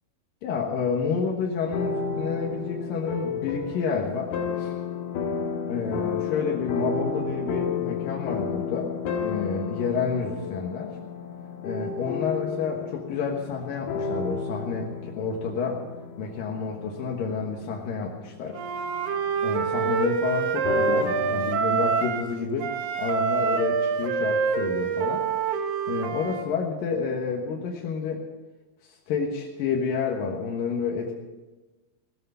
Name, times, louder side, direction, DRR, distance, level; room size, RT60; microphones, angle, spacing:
voice 1, 0.4-4.7 5.7-8.9 9.2-10.9 11.6-15.8 16.2-18.6 19.4-22.7 23.0-25.2 25.9-28.2 28.9-31.1, left 5 dB, 70° left, -1 dB, 3.0 m, -29 dB
sound 1, 1.6-21.4, left 5 dB, 90° left, 3.5 m, -32 dB
Wind instrument woodwind instrument, 18.5-22.3 22.6-26.5, right 6 dB, 70° right, 2.7 m, -26 dB
18.0 x 13.5 x 5.6 m, 1.2 s
omnidirectional pair, 4.3 m